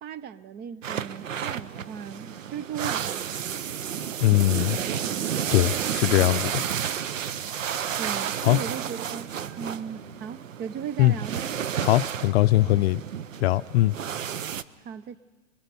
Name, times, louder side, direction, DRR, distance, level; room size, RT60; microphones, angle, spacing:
voice 1, 0.0-3.6 8.0-9.3 9.6-11.5 14.8-15.2, right 8 dB, 25° right, 0.8 m, -37 dB
sound 1, 0.8-14.6, right 8 dB, 90° right, 0.8 m, -31 dB
voice 2, 4.2-4.8 5.5-6.6 8.4-8.6 11.0-11.1 11.8-13.0 13.4-13.9, left 17 dB, 55° left, 0.5 m, -21 dB
25.5 x 22.0 x 5.4 m
hypercardioid pair, 120°, 38 cm